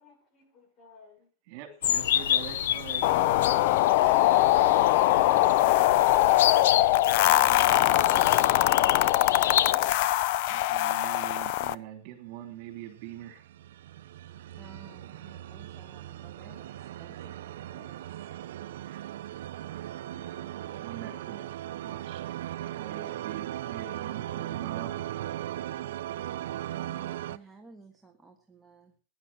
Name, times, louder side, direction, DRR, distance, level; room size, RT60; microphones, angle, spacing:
voice 1, 0.0-1.3 1.8-2.0 2.3-2.4 14.3-14.7 15.0-15.1, left 4 dB, 30° left, 7 dB, 4.3 m, -57 dB
voice 2, 1.5-3.2 10.5-13.5 18.8-19.0 20.6-22.2 22.7-25.0, right 12 dB, 50° right, 6 dB, 3.0 m, -43 dB
sound 1, 1.8-9.7, left 10 dB, 85° left, 0.8 m, -30 dB
sound 2, 3.0-11.7, left 15 dB, 50° left, 0.6 m, -22 dB
voice 3, 7.2-7.9 8.4-9.2 14.6-17.3 17.7-17.9 20.1-20.8 26.3-28.9, right 3 dB, 5° right, 1 dB, 1.5 m, -54 dB
sound 3, 13.0-27.4, right 13 dB, 80° right, 0.7 m, -38 dB
15.5 x 10.5 x 5.9 m, 0.38 s
supercardioid pair, 160°, 0 cm